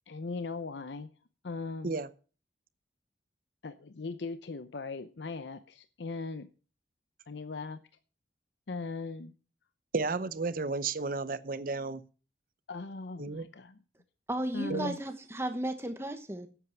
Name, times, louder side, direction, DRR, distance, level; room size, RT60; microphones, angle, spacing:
voice 1, 0.1-1.1 1.4-1.9 3.6-6.5 7.3-7.8 8.7-9.3 12.7-13.8 14.5-15.0, left 3 dB, 75° left, 11 dB, 0.7 m, -39 dB
voice 2, 9.9-12.0 13.2-13.5 14.7-14.9, right 3 dB, 50° right, 15 dB, 0.7 m, -32 dB
voice 3, 14.3-16.5, right 1 dB, 15° right, 7 dB, 1.1 m, -34 dB
11.0 x 8.4 x 5.9 m, 0.37 s
head